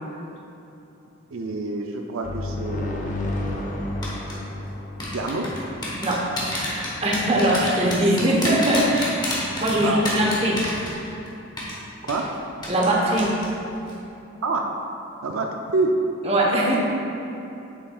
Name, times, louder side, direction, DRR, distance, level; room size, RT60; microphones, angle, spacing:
voice 1, 1.3-3.1 5.1-5.5 9.7-10.0 12.0-12.2 14.4-14.6 15.2-15.9, right 3 dB, 80° right, 2 dB, 0.5 m, -27 dB
sound 1, 2.2-6.0, left 2 dB, 35° left, 0.6 m, -31 dB
sound 2, 4.0-4.3 5.0-11.3 11.6-11.7 12.1-12.2 12.6-12.9 13.2-13.5 13.8-13.9, left 1 dB, 20° left, 1.2 m, -29 dB
voice 2, 6.0-9.2 9.6-10.6 12.7-13.4 16.2-16.8, right 1 dB, 30° right, -3 dB, 1.0 m, -21 dB
8.7 x 6.9 x 2.4 m, 2.9 s
head